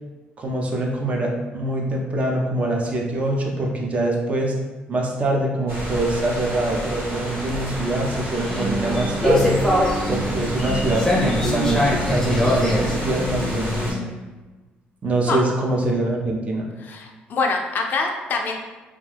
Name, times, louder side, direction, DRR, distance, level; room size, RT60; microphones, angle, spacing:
voice 1, 0.4-4.5 4.9-9.6 10.1-14.0 15.0-16.7, right 2 dB, 35° right, 0 dB, 0.5 m, -24 dB
sound 1, 5.7-13.9, equal, 65° right, 0.8 m, -30 dB
sound 2, 7.3-14.1, left 1 dB, 10° left, 0.6 m, -23 dB
voice 2, 16.8-18.6, left 4 dB, 55° left, 2 dB, 0.4 m, -25 dB
2.3 x 2.3 x 3.2 m, 1.2 s
cardioid pair, 110°, 4 cm